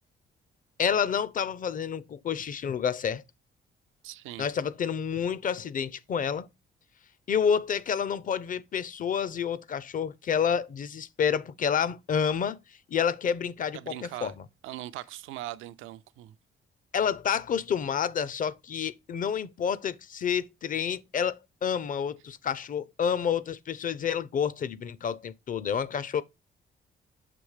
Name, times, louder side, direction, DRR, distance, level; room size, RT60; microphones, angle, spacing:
voice 1, 0.8-3.2 4.4-6.5 7.3-12.6 12.9-14.4 16.9-26.2, left 7 dB, 40° left, 0.6 m, -29 dB
voice 2, 4.0-4.5 13.7-14.3 14.6-16.4, right 14 dB, 90° right, 0.5 m, -40 dB
6.9 x 3.1 x 4.8 m
cardioid pair, 90°, 20 cm